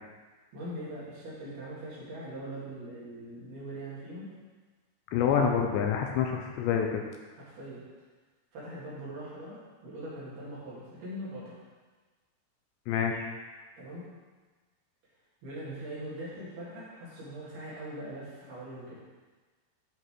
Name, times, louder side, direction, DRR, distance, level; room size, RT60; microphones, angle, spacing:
voice 1, 0.5-4.3 7.5-7.8 8.5-11.6 13.8-14.0 15.4-19.0, right 1 dB, 60° right, -8 dB, 4.0 m, -41 dB
voice 2, 5.1-7.0 12.9-13.3, left 7 dB, 85° left, 2 dB, 2.7 m, -27 dB
11.0 x 5.4 x 3.7 m, 1.4 s
omnidirectional pair, 5.3 m